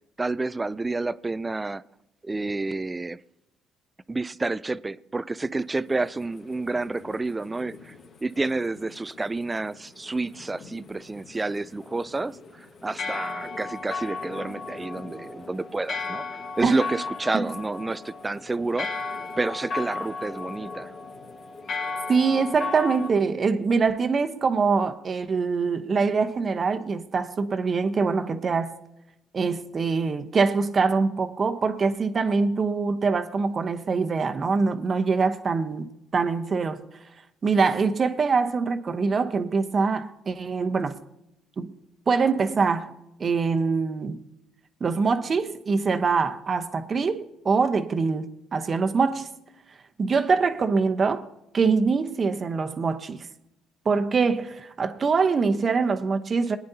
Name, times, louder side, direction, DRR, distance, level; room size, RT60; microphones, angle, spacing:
voice 1, 0.2-1.8 2.2-3.2 4.1-7.9 8.2-16.2 16.6-18.9 19.4-20.9, right 3 dB, 20° right, 0.4 m, -29 dB
sound 1, 5.4-23.1, left 4 dB, 55° left, 1.7 m, -36 dB
voice 2, 22.1-28.8 29.3-36.9 37.4-41.0 41.6-41.8 42.1-44.2 44.8-49.3 50.0-51.3 51.5-53.2 53.8-56.6, right 4 dB, 40° right, 1.0 m, -24 dB
22.0 x 9.5 x 2.8 m
supercardioid pair, 80°, 0 cm